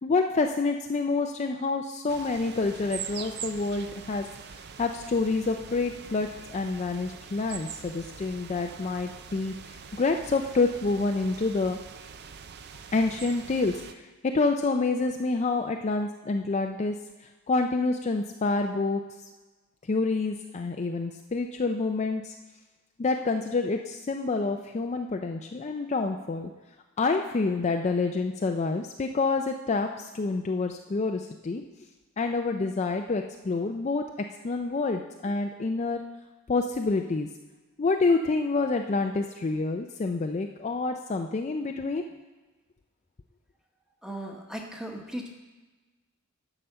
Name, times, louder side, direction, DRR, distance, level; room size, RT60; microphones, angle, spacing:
voice 1, 0.0-4.3 4.8-11.8 12.9-17.0 17.5-19.0 19.9-22.3 23.0-26.5 27.0-31.7 32.2-36.0 36.5-37.3 37.8-42.0, left 3 dB, 30° left, 4 dB, 0.4 m, -28 dB
sound 1, 2.1-13.9, right 7 dB, 45° right, 0.5 m, -43 dB
voice 2, 44.0-45.3, right 1 dB, 5° right, 1 dB, 1.2 m, -37 dB
11.0 x 5.0 x 6.7 m, 1.2 s
head